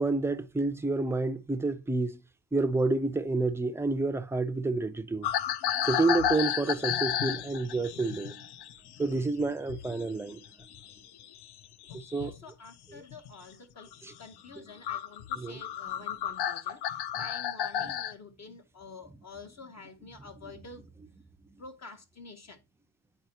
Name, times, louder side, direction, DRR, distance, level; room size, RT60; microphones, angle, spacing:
voice 1, 0.0-2.2 2.5-5.3 5.8-8.4 9.0-10.4 11.9-12.3 15.4-15.6 17.8-17.9, right 3 dB, 5° right, 0.4 m, -29 dB
sound 1, 5.2-10.0 10.3-12.4 13.0-13.3 13.8-13.9 14.5-14.6 14.8-18.1, left 10 dB, 65° left, 0.6 m, -32 dB
voice 2, 11.9-13.9 14.2-20.9 21.6-22.6, left 3 dB, 40° left, 0.8 m, -48 dB
9.1 x 4.2 x 2.8 m
cardioid pair, 110°, 43 cm